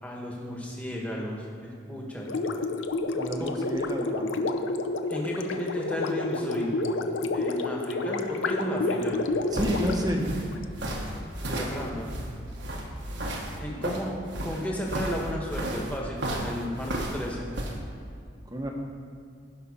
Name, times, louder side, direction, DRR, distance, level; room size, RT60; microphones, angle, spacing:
voice 1, 0.0-2.3 3.4-3.5 5.1-6.7 7.3-9.2 11.5-12.1 13.6-14.1 14.4-17.5, equal, 10° left, -2 dB, 1.6 m, -34 dB
Gurgling, 2.3-10.6, left 2 dB, 75° left, 0.6 m, -29 dB
voice 2, 3.1-4.3 9.5-10.3 18.5-18.7, equal, 20° right, 1 dB, 1.2 m, -30 dB
sound 1, 9.1-17.8, right 1 dB, 65° right, 1.4 m, -33 dB
15.5 x 5.8 x 5.6 m, 2.3 s
head